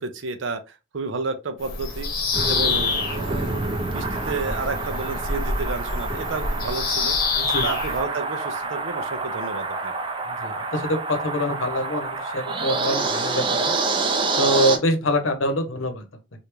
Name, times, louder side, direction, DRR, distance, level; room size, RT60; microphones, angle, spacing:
voice 1, 0.0-2.1 2.5-7.2 7.6-9.9, right 3 dB, 75° right, 0.6 m, -31 dB
Bird vocalization bird call bird song, 1.6-8.0, left 4 dB, 50° left, 0.9 m, -27 dB
sound 1, 2.3-14.8, right 3 dB, 25° right, 0.5 m, -27 dB
voice 2, 7.3-7.7 10.3-13.7 14.4-16.0, equal, 85° left, 0.8 m, -25 dB
3.4 x 2.6 x 2.9 m
head